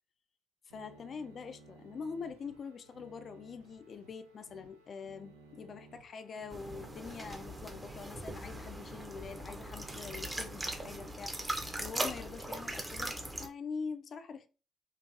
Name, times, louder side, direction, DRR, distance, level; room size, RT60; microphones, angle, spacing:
voice 1, 0.7-14.5, left 5 dB, 45° left, 0.4 m, -44 dB
sound 1, 0.7-11.1, right 3 dB, 80° right, 0.5 m, -57 dB
sound 2, 6.5-13.5, right 1 dB, 15° right, 0.8 m, -40 dB
3.9 x 2.6 x 2.6 m
figure-of-eight pair, 50°, 0 cm